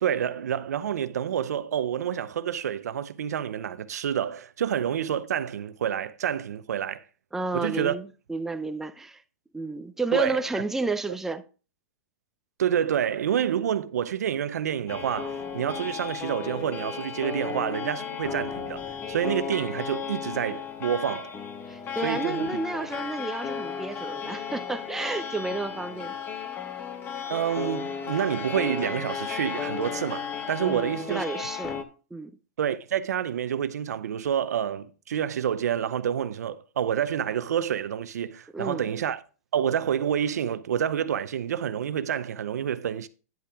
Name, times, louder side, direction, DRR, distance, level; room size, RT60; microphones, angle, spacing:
voice 1, 0.0-7.0 7.5-8.0 10.1-10.4 12.6-18.8 19.1-21.4 22.0-22.5 27.3-31.5 32.6-39.2 39.5-43.1, right 9 dB, 90° right, 0.6 m, -28 dB
voice 2, 7.3-9.2 9.5-11.4 21.7-26.1 30.6-31.8 32.1-32.3 38.5-38.9, right 2 dB, 5° right, 0.6 m, -31 dB
sound 1, 14.9-31.8, left 7 dB, 25° left, 1.0 m, -34 dB
10.5 x 5.7 x 3.6 m
hypercardioid pair, 140°, 9 cm